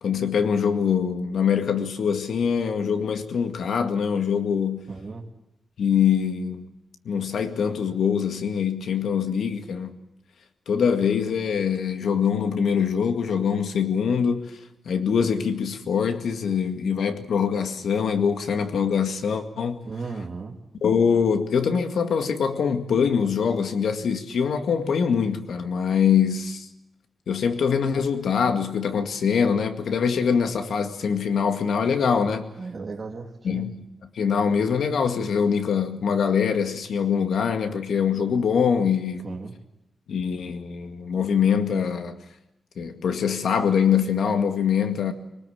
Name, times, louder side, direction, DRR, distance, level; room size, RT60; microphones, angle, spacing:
voice 1, 0.0-4.8 5.8-6.6 7.1-10.0 10.7-14.6 14.9-19.8 20.8-26.7 27.3-32.5 33.4-33.8 34.2-39.3 40.1-42.2 42.8-45.1, left 7 dB, 80° left, 2.0 m, -23 dB
voice 2, 4.9-5.2 19.8-20.6 32.6-33.7 39.2-39.5, right 4 dB, 35° right, 2.8 m, -35 dB
22.5 x 19.5 x 8.6 m
wide cardioid pair, 165°, 0 cm